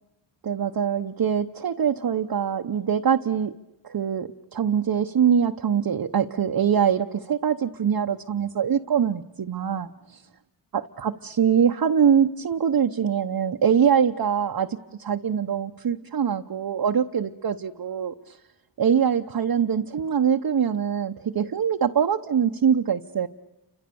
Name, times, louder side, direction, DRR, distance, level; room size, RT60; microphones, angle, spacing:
voice 1, 0.4-3.5 3.8-10.2 11.0-18.4 18.8-23.3, right 7 dB, 50° right, 3 dB, 0.9 m, -23 dB
29.5 x 26.0 x 6.9 m, 0.99 s
wide cardioid pair, 85°, 48 cm